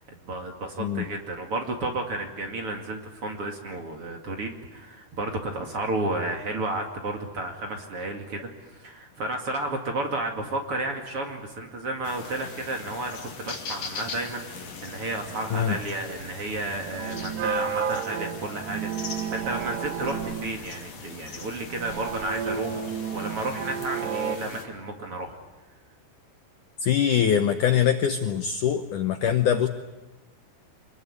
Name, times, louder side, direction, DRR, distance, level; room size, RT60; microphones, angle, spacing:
voice 1, 0.2-22.8 23.1-25.4, right 2 dB, 40° right, 3 dB, 2.5 m, -32 dB
sound 1, 12.0-24.6, left 4 dB, 40° left, 3.4 m, -41 dB
sound 2, 15.2-24.4, right 7 dB, 80° right, 3.6 m, -32 dB
voice 2, 26.8-29.7, left 9 dB, 70° left, 8 dB, 1.9 m, -23 dB
26.5 x 21.5 x 9.7 m, 1.1 s
omnidirectional pair, 4.8 m